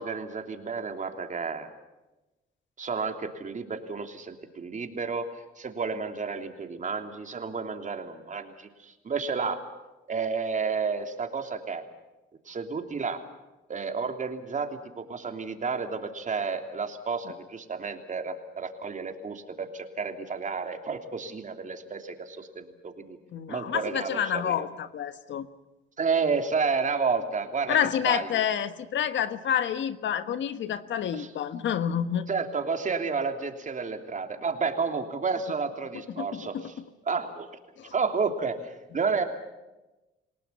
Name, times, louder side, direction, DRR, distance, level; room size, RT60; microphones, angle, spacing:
voice 1, 0.0-1.7 2.8-5.3 5.6-9.6 10.1-11.8 12.5-13.2 13.7-23.2 23.5-24.7 26.0-27.8 28.0-28.4 31.1-31.3 32.3-36.7 37.0-37.5 37.9-39.2, right 5 dB, 40° right, 5 dB, 3.2 m, -31 dB
voice 2, 23.3-25.5 27.7-32.2 36.2-36.7 37.8-37.9, left 9 dB, 70° left, 11 dB, 1.4 m, -28 dB
28.0 x 18.5 x 7.1 m, 1.0 s
cardioid pair, 90°, 20 cm